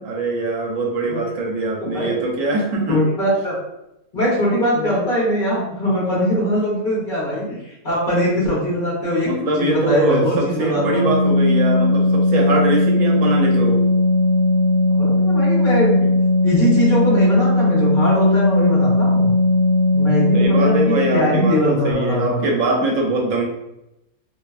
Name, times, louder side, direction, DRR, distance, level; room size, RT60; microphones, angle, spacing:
voice 1, 0.0-3.0 4.7-4.9 9.2-13.8 20.3-23.4, right 2 dB, 70° right, -1 dB, 1.0 m, -22 dB
voice 2, 2.9-3.6 4.1-11.1 14.9-16.1 16.4-19.3 19.9-22.4, equal, 40° left, -7 dB, 0.9 m, -21 dB
Organ, 10.7-21.3, left 2 dB, 15° left, 0.6 m, -17 dB
2.6 x 2.3 x 2.3 m, 0.88 s
omnidirectional pair, 1.5 m